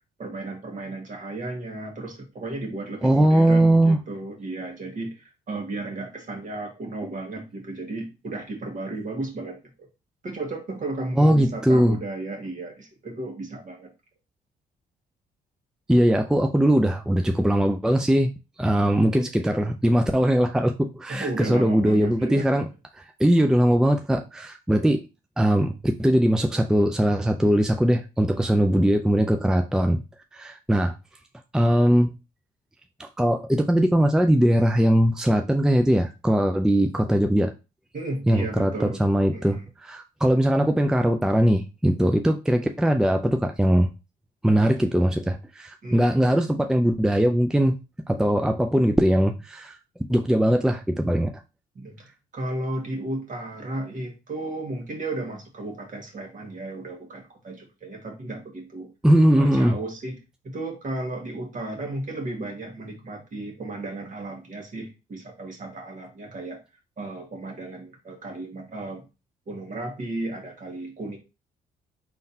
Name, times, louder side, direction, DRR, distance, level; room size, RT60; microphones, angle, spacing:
voice 1, 0.2-9.9 10.2-13.9 21.1-22.6 37.9-39.0 39.3-39.7 44.6-44.7 45.8-46.2 51.7-52.1 52.3-58.9 59.4-60.2 60.4-66.6 67.0-69.0 69.5-71.2, right 2 dB, 45° right, 1.7 m, -34 dB
voice 2, 3.0-4.0 11.2-12.0 15.9-18.3 18.6-22.7 22.9-25.0 25.4-30.0 30.3-30.9 31.5-32.1 33.0-37.5 38.3-43.9 44.4-47.8 48.1-49.8 50.1-51.3 59.0-59.8, equal, 5° right, 0.4 m, -20 dB
4.4 x 3.7 x 2.8 m
supercardioid pair, 70°, 18 cm